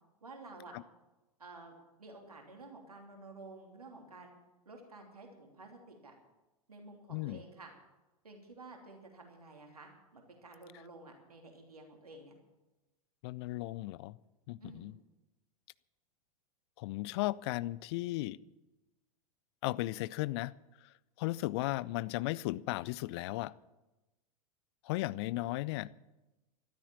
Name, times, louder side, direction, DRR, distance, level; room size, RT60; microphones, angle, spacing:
voice 1, 0.2-0.7 1.4-1.7 2.0-4.3 4.6-6.1 6.7-7.7 8.2-12.3 14.6-14.9, right 2 dB, 80° right, 2 dB, 3.0 m, -52 dB
voice 2, 7.1-7.4 13.2-14.2 14.5-14.9 16.8-18.4 19.6-20.5 21.2-23.5 24.8-25.9, left 18 dB, 45° left, 20 dB, 0.5 m, -35 dB
14.0 x 12.5 x 7.2 m, 1.0 s
figure-of-eight pair, 95°, 19 cm